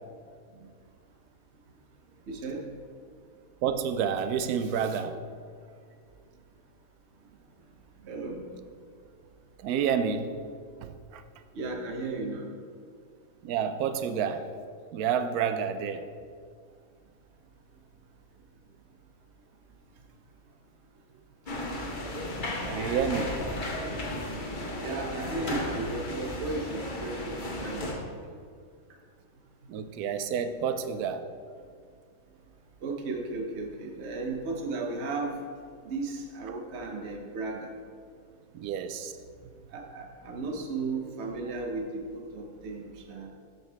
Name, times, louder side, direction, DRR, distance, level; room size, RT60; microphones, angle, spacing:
voice 1, 2.3-2.6 8.0-8.4 11.5-12.5 23.1-23.3 24.8-28.1 32.8-35.3 35.8-37.7 39.7-43.3, right 3 dB, 50° right, 2 dB, 1.2 m, -35 dB
voice 2, 3.6-5.2 9.6-10.3 10.8-11.2 13.4-14.5 14.9-16.1 22.4-23.4 29.7-31.3 36.5-36.6 38.5-39.1, right 7 dB, 80° right, 10 dB, 1.1 m, -29 dB
sound 1, 21.5-27.9, left 1 dB, 35° left, 1.2 m, -34 dB
13.0 x 5.4 x 3.5 m, 2.1 s
omnidirectional pair, 1.6 m